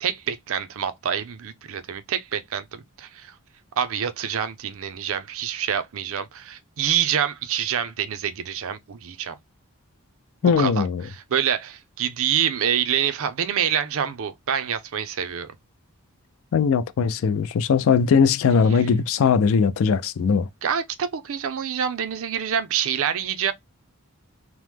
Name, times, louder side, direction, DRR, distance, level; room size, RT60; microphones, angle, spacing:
voice 1, 0.0-3.3 3.8-9.4 10.4-15.5 18.7-18.9 20.6-23.5, right 8 dB, 65° right, 0.5 m, -26 dB
voice 2, 10.4-11.0 16.5-20.5, left 6 dB, 65° left, 0.4 m, -20 dB
3.0 x 2.0 x 3.3 m
head